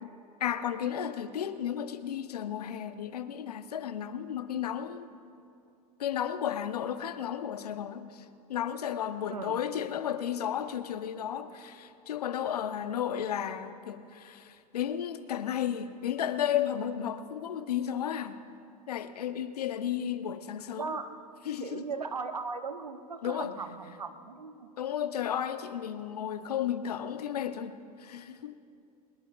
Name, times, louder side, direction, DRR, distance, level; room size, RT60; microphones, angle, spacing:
voice 1, 0.0-5.1 6.0-8.2 8.5-18.4 18.9-21.0 21.5-21.8 23.2-23.6 24.8-28.5, left 9 dB, 75° left, 0.8 m, -33 dB
voice 2, 20.8-21.3 21.6-24.7, right 4 dB, 90° right, 0.9 m, -38 dB
22.5 x 21.0 x 2.5 m
hypercardioid pair, 80°, 20 cm